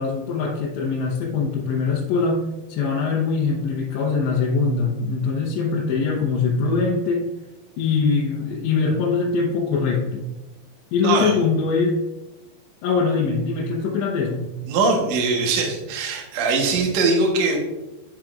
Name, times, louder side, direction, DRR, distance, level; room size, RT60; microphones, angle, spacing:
voice 1, 0.0-2.4 2.7-7.2 7.8-10.2 10.9-12.0 12.8-14.5, left 4 dB, 90° left, -5 dB, 3.2 m, -22 dB
voice 2, 11.0-11.3 14.7-17.6, right 3 dB, 75° right, 0 dB, 1.6 m, -21 dB
10.5 x 5.9 x 2.5 m, 1.0 s
omnidirectional pair, 5.1 m